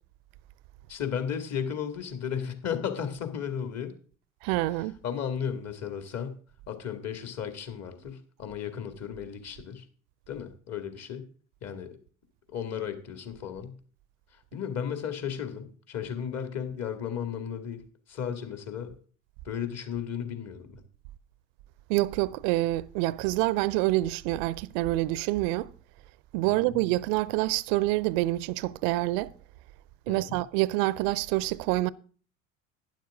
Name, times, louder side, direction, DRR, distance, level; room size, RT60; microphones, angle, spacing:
voice 1, 0.9-3.9 4.7-9.9 10.3-11.3 11.6-12.0 12.5-13.8 14.3-18.9 19.4-20.8 26.4-26.8 30.1-30.4, left 8 dB, 40° left, 2.1 m, -35 dB
voice 2, 4.4-5.0 21.9-25.7 26.3-29.3 30.1-31.9, right 18 dB, 50° right, 0.6 m, -27 dB
11.5 x 10.5 x 3.6 m
figure-of-eight pair, 65°, 40 cm